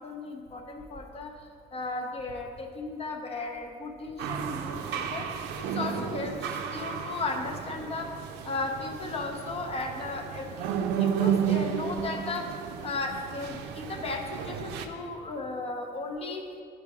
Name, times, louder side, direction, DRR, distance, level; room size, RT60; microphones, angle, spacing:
voice 1, 0.0-5.3 5.5-8.1 8.4-16.4, left 3 dB, 35° left, 3 dB, 0.6 m, -35 dB
sound 1, 4.2-14.9, right 8 dB, 90° right, 0.4 m, -32 dB
4.9 x 4.7 x 4.7 m, 2.3 s
cardioid pair, 110°, 17 cm